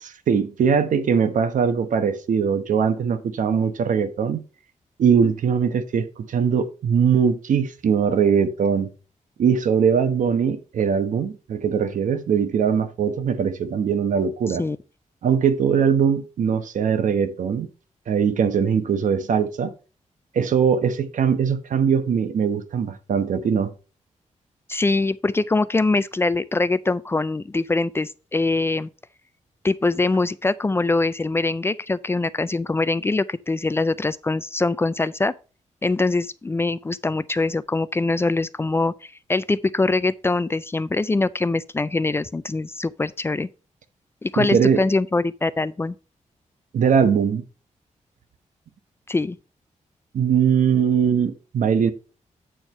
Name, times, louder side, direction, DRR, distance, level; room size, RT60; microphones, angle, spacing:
voice 1, 0.0-4.4 5.0-8.9 9.4-14.6 15.2-17.7 18.1-19.7 20.3-23.7 44.4-44.8 46.7-47.4 50.1-51.9, right 7 dB, 80° right, 1.0 m, -21 dB
voice 2, 24.7-28.9 29.6-35.3 35.8-43.5 44.2-45.9 49.1-49.4, left 3 dB, 20° left, 0.3 m, -23 dB
8.8 x 4.6 x 5.3 m
wide cardioid pair, 150°, 13 cm